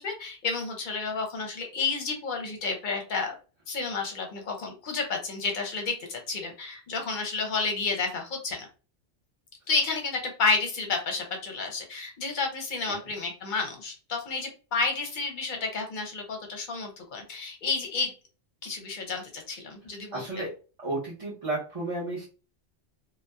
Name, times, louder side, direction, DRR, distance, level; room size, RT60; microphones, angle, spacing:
voice 1, 0.0-3.4 3.7-8.7 9.7-18.1 18.6-20.2, left 4 dB, 50° left, 2 dB, 0.7 m, -31 dB
voice 2, 20.1-20.5 20.8-22.2, right 2 dB, 35° right, -7 dB, 0.7 m, -32 dB
2.6 x 2.1 x 2.2 m, 0.34 s
omnidirectional pair, 1.1 m